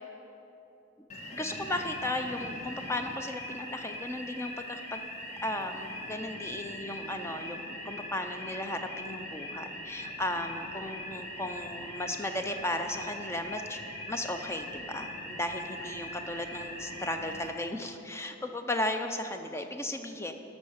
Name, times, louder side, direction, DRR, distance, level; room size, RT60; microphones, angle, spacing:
sound 1, 1.1-17.5, left 1 dB, 35° left, 1.5 m, -41 dB
voice 1, 1.3-5.0 5.4-13.8 14.1-20.3, left 1 dB, 15° left, 6 dB, 0.6 m, -35 dB
12.5 x 6.3 x 6.5 m, 3.0 s
head